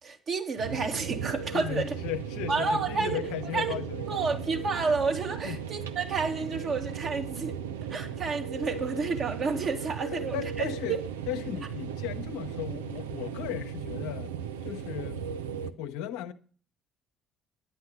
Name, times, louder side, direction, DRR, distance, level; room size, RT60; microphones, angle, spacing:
voice 1, 0.0-1.9 2.5-3.2 3.5-3.8 4.1-7.6 7.9-11.0, right 4 dB, 45° right, 2.4 m, -30 dB
sound 1, 0.6-15.7, right 7 dB, 75° right, 0.6 m, -36 dB
voice 2, 1.5-4.5 5.4-5.6 10.1-11.0 11.3-14.4 14.6-15.2 15.8-16.3, left 11 dB, 65° left, 0.8 m, -36 dB
10.5 x 9.3 x 5.6 m
figure-of-eight pair, 50°, 0 cm